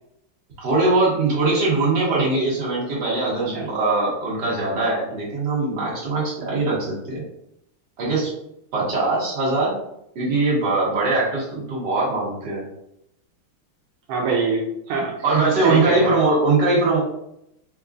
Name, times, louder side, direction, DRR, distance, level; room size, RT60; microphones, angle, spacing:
voice 1, 0.6-7.2 8.0-8.3 8.7-9.8 10.2-12.6 15.2-17.0, right 3 dB, 60° right, -7 dB, 2.0 m, -21 dB
voice 2, 14.1-16.1, right 4 dB, 85° right, -2 dB, 1.5 m, -24 dB
4.9 x 2.3 x 2.5 m, 0.77 s
omnidirectional pair, 2.3 m